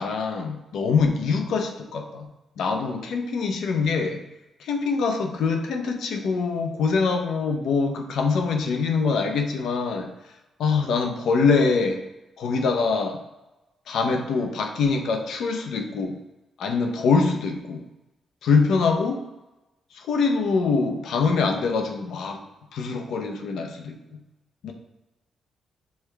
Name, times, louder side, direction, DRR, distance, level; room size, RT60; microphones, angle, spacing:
voice 1, 0.0-2.3 2.6-4.2 4.6-10.1 10.6-12.0 12.4-13.2 13.9-16.2 16.6-17.8 18.4-19.2 19.9-22.4 22.7-24.2 24.6-24.7, left 4 dB, 80° left, 4 dB, 0.6 m, -24 dB
6.4 x 2.3 x 3.2 m, 1.0 s
cardioid pair, 110°, 0 cm